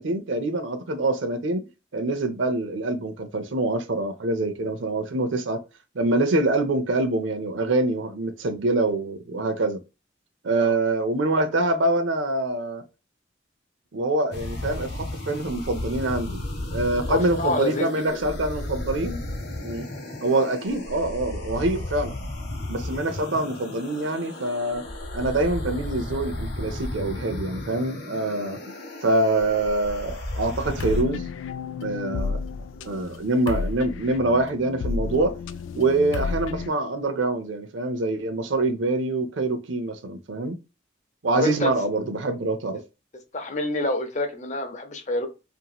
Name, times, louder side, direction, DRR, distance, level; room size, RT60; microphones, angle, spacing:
voice 1, 0.0-5.6 5.9-9.8 10.4-12.8 13.9-16.4 16.7-19.2 19.6-19.9 20.2-22.2 22.7-24.9 25.1-28.7 29.0-31.2 31.8-32.4 32.9-35.4 35.7-40.6 41.2-42.8, right 2 dB, 75° right, 0.6 m, -25 dB
sound 1, 14.3-31.0, left 1 dB, 55° left, 1.0 m, -34 dB
voice 2, 17.1-18.2 32.7-33.0 41.3-41.7 43.3-45.3, left 2 dB, 40° left, 0.6 m, -28 dB
sound 2, 30.8-36.7, left 4 dB, 85° left, 0.3 m, -31 dB
2.9 x 2.6 x 2.3 m
head